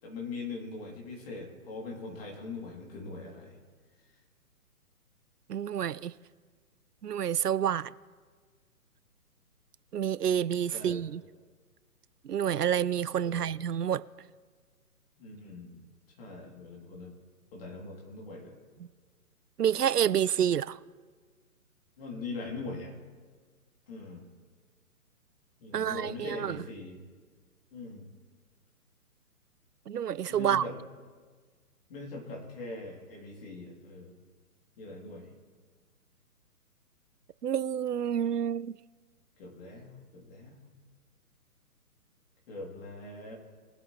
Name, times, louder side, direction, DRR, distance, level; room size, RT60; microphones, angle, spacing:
voice 1, 0.0-3.6 10.7-11.0 13.2-13.4 15.2-15.8 16.2-17.1 17.5-18.6 22.0-22.9 23.9-24.2 25.6-27.0 27.7-28.0 30.3-30.7 31.9-34.1 34.8-35.3 39.4-40.7 42.5-43.3, left 3 dB, 40° left, 3.1 m, -41 dB
voice 2, 5.5-6.1 7.0-7.9 9.9-11.2 12.2-14.0 19.6-20.8 25.7-26.6 29.9-30.7 37.4-38.7, right 9 dB, 90° right, 0.5 m, -28 dB
21.5 x 8.1 x 3.2 m
figure-of-eight pair, 135°, 46 cm